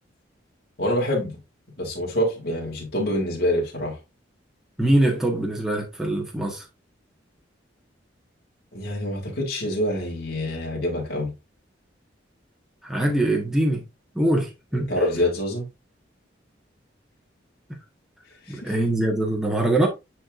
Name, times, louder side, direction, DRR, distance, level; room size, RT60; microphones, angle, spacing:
voice 1, 0.8-1.3 1.8-4.0 8.7-11.3 14.7-15.7 18.5-18.7, left 1 dB, 50° left, 3.1 m, -26 dB
voice 2, 4.8-6.6 12.8-13.8 14.1-14.9 18.5-19.9, right 1 dB, ahead, 1.5 m, -23 dB
9.8 x 4.6 x 2.6 m
head